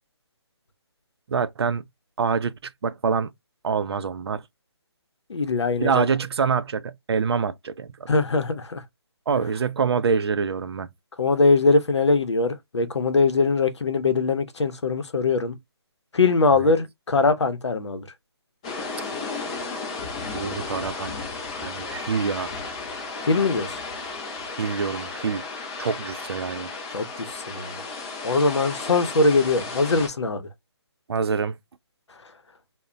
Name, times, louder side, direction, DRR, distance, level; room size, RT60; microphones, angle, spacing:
voice 1, 1.3-1.8 2.2-3.3 3.6-4.4 5.8-8.1 9.3-10.9 16.5-16.7 20.2-21.1 21.6-22.5 24.6-25.4 25.8-26.7 31.1-31.6, right 6 dB, 65° right, 0.4 m, -26 dB
voice 2, 5.3-6.1 8.1-8.8 11.2-15.6 16.1-18.1 23.2-23.8 26.9-27.8 28.2-30.4, left 3 dB, 85° left, 0.7 m, -22 dB
sound 1, 18.6-30.1, left 3 dB, 15° left, 0.4 m, -34 dB
2.1 x 2.0 x 3.7 m
hypercardioid pair, 160°, 14 cm